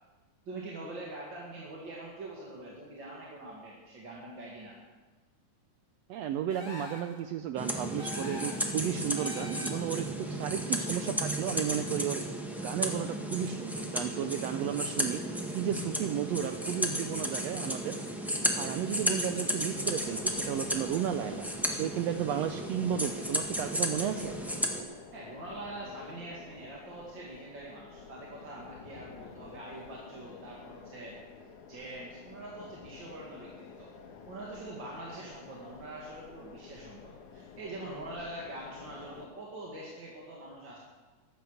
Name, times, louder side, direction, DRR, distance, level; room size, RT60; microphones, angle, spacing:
voice 1, 0.5-4.8 25.1-33.9 34.3-40.8, right 2 dB, 40° right, -4 dB, 2.5 m, -44 dB
voice 2, 6.1-12.2 12.6-15.2 15.5-18.0 18.6-24.4, right 9 dB, 90° right, 8 dB, 1.4 m, -33 dB
sound 1, 6.5-7.2 8.0-8.7 9.1-10.0, left 2 dB, 20° left, 1.8 m, -44 dB
sound 2, 7.6-24.8, equal, ahead, 0.3 m, -34 dB
sound 3, 19.7-39.3, left 5 dB, 70° left, 2.8 m, -50 dB
15.0 x 12.0 x 6.4 m, 1.3 s
omnidirectional pair, 3.6 m